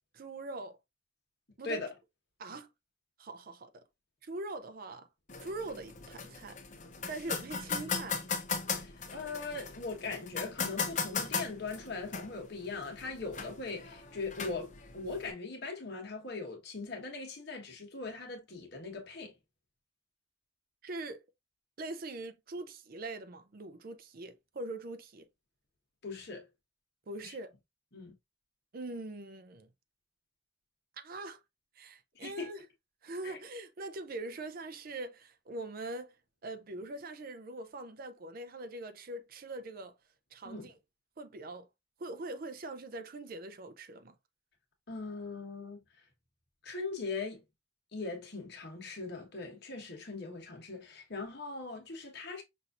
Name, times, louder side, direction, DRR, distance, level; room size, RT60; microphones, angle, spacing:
voice 1, 0.1-0.8 1.6-1.9 2.4-2.7 3.2-3.8 4.2-5.1 5.4-6.6 7.1-8.2 20.8-21.2 21.8-25.3 27.1-27.5 28.7-29.7 31.0-31.4 31.8-32.6 33.0-36.2 36.4-39.9 40.3-40.7 41.2-41.7 42.0-44.2, right 2 dB, 45° right, 0.5 m, -42 dB
sound 1, 5.3-15.3, left 5 dB, 35° left, 0.6 m, -38 dB
voice 2, 8.7-19.3 26.0-26.4 27.2-27.3 27.9-28.1 32.2-32.5 33.2-33.4 40.4-40.7 44.9-45.8 46.6-47.4 47.9-52.4, left 3 dB, 50° left, 1.3 m, -40 dB
5.8 x 2.6 x 2.4 m
head